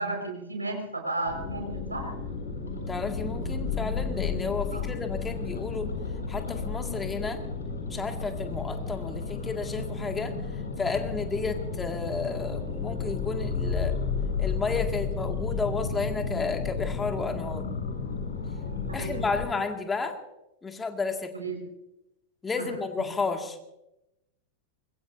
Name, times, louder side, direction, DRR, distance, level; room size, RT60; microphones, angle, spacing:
voice 1, 0.0-2.1 4.7-4.8 18.9-19.2 21.3-21.6 22.6-22.7, right 2 dB, 80° right, 2 dB, 5.0 m, -33 dB
sound 1, 1.2-19.5, left 5 dB, 70° left, 7.7 m, -32 dB
voice 2, 2.9-5.9 6.3-7.4 7.9-10.3 10.8-14.0 14.4-17.6 18.9-20.2 20.6-21.4 22.4-23.6, left 4 dB, 15° left, 5 dB, 2.0 m, -32 dB
24.5 x 22.0 x 2.7 m, 0.88 s
figure-of-eight pair, 90°, 0 cm